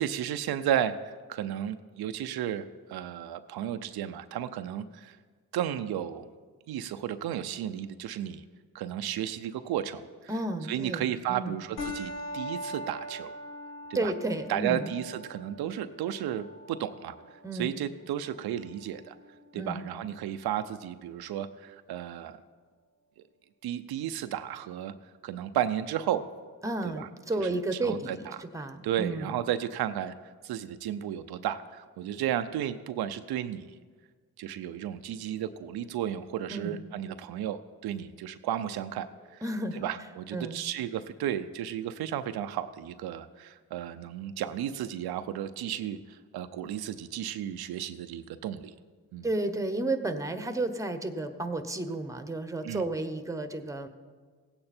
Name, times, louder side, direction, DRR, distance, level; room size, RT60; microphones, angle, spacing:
voice 1, 0.0-5.2 5.5-6.3 6.7-8.4 8.7-10.3 10.7-13.3 13.9-14.1 14.5-17.2 17.5-19.2 19.5-22.4 23.6-24.9 25.2-26.3 26.8-27.1 27.4-33.8 34.4-39.1 39.3-39.4 39.7-48.7 49.1-49.3 52.6-52.9, right 10 dB, 85° right, 10 dB, 0.6 m, -33 dB
voice 2, 10.3-11.6 13.9-14.9 17.4-17.7 19.5-19.8 26.6-29.3 36.5-36.8 39.4-39.8 40.3-40.6 49.2-53.9, right 2 dB, 10° right, 9 dB, 1.1 m, -32 dB
sound 1, 11.8-20.8, left 1 dB, 75° left, 2.1 m, -43 dB
16.5 x 8.7 x 4.4 m, 1.5 s
cardioid pair, 65°, 37 cm